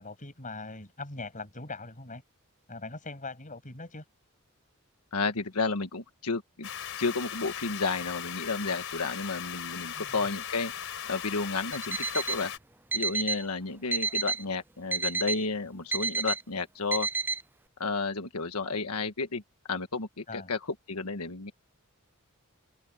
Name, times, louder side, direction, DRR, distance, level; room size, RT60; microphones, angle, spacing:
voice 1, 0.0-2.2 2.7-4.0 9.9-10.2 20.3-20.5, left 3 dB, 35° left, 6.9 m, -41 dB
voice 2, 5.1-6.7 7.0-10.7 11.1-12.5 12.9-17.1 17.8-19.4 19.7-20.6 20.9-21.5, left 4 dB, 85° left, 1.4 m, -32 dB
sound 1, 6.6-12.6, left 9 dB, 65° left, 4.2 m, -38 dB
Alarm, 11.7-12.4 12.9-13.4 13.9-14.4 14.9-15.4 15.9-16.4 16.9-17.4, right 4 dB, 10° right, 0.5 m, -30 dB
open air
head